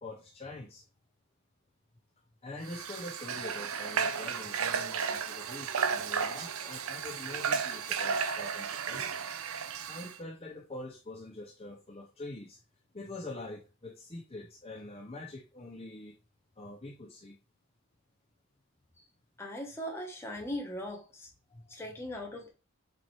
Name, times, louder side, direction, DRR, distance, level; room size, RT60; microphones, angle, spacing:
voice 1, 0.0-0.8 2.4-9.2 9.9-12.6 12.9-16.2 16.6-17.4 21.5-21.8, left 2 dB, 25° left, 1 dB, 0.6 m, -45 dB
Water / Water tap faucet, 2.6-10.2, right 6 dB, 75° right, 0.6 m, -33 dB
voice 2, 19.4-21.3 21.7-22.5, equal, 10° left, 0 dB, 1.3 m, -39 dB
6.8 x 3.0 x 4.7 m, 0.32 s
head